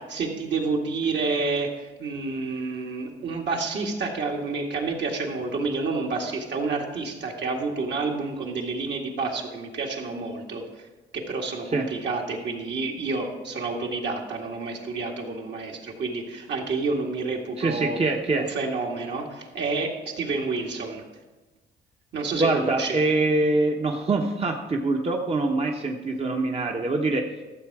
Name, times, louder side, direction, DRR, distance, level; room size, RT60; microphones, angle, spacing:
voice 1, 0.0-10.6 11.1-18.0 18.3-21.0 22.1-23.0, right 3 dB, 60° right, 0 dB, 2.1 m, -29 dB
voice 2, 17.6-18.5 22.3-27.3, right 2 dB, 30° right, 1 dB, 1.0 m, -24 dB
13.5 x 7.3 x 4.7 m, 1.2 s
cardioid pair, 90°, 20 cm